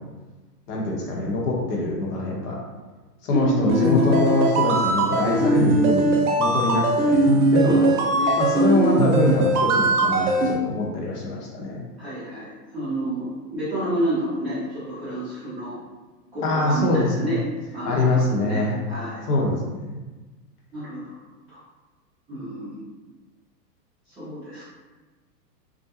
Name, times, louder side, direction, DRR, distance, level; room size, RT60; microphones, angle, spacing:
voice 1, 0.7-2.6 3.2-7.9 8.4-11.8 16.4-17.3 17.8-18.8 19.3-19.8, left 2 dB, 65° left, -2 dB, 0.9 m, -24 dB
voice 2, 3.3-4.0 7.6-8.4 12.0-15.7 16.3-17.4 17.7-19.2 20.7-21.1 21.5-21.6 22.3-22.8 24.1-24.6, right 1 dB, 5° right, -18 dB, 0.4 m, -29 dB
sound 1, 3.7-10.5, right 2 dB, 60° right, 0.7 m, -20 dB
2.4 x 2.2 x 2.7 m, 1.2 s
hypercardioid pair, 130°, 49 cm